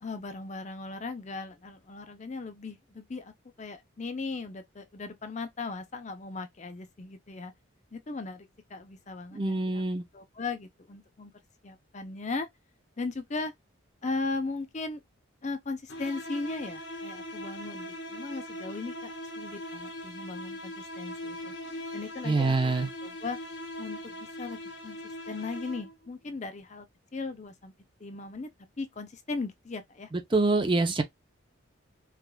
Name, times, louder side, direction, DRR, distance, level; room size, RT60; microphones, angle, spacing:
voice 1, 0.0-3.3 3.6-7.5 7.9-9.8 10.1-11.3 11.6-12.5 13.0-13.5 14.0-15.0 15.4-19.1 19.4-21.5 21.9-23.4 23.8-25.0 25.3-26.9 27.1-27.7 28.0-28.5 28.8-30.1, left 3 dB, 35° left, 0.5 m, -37 dB
voice 2, 9.3-10.0 22.2-22.9 30.1-31.0, right 3 dB, 25° right, 0.5 m, -25 dB
sound 1, 15.9-26.1, left 1 dB, 55° left, 1.0 m, -40 dB
4.8 x 2.4 x 2.3 m
head